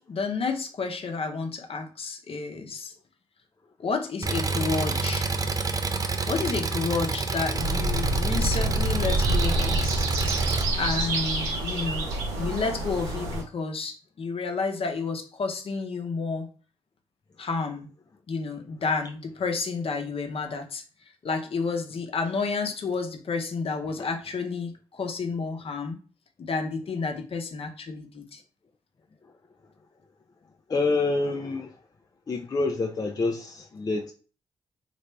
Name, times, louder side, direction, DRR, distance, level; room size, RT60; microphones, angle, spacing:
voice 1, 0.1-2.9 3.8-5.3 6.3-10.0 10.8-12.1 12.4-16.5 17.4-17.9 18.3-20.8 21.2-26.0 26.4-28.4, left 4 dB, 50° left, 0.8 m, -30 dB
Engine, 4.2-10.6, right 3 dB, 30° right, 0.5 m, -28 dB
sound 1, 7.6-13.4, right 2 dB, 90° right, 0.7 m, -27 dB
voice 2, 30.7-31.8 32.3-34.1, left 3 dB, 30° left, 0.4 m, -27 dB
3.3 x 2.5 x 3.1 m
hypercardioid pair, 45°, 12 cm